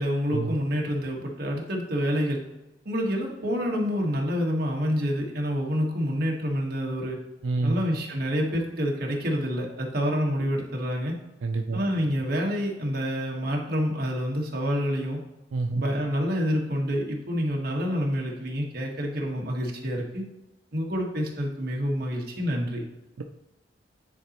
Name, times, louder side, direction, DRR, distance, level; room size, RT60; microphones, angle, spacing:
voice 1, 0.0-2.4 2.8-7.2 7.6-11.2 11.7-15.2 15.7-20.2 20.7-22.8, equal, 55° right, -1 dB, 1.4 m, -27 dB
voice 2, 7.4-7.8 11.4-11.8 15.5-15.8 23.2-23.3, right 3 dB, 90° right, 4 dB, 0.4 m, -27 dB
9.8 x 4.0 x 2.9 m, 1.0 s
head